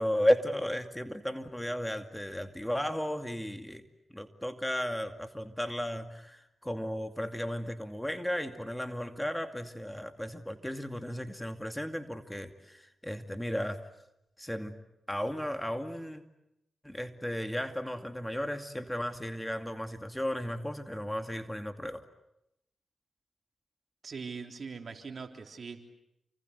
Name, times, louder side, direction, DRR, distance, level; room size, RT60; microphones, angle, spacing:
voice 1, 0.0-3.8 4.1-13.8 14.4-14.8 15.1-16.2 16.8-22.0, equal, 10° left, 7 dB, 2.4 m, -34 dB
voice 2, 24.0-25.9, right 5 dB, 60° right, 4 dB, 3.6 m, -41 dB
29.0 x 25.5 x 8.1 m, 0.87 s
supercardioid pair, 45°, 0 cm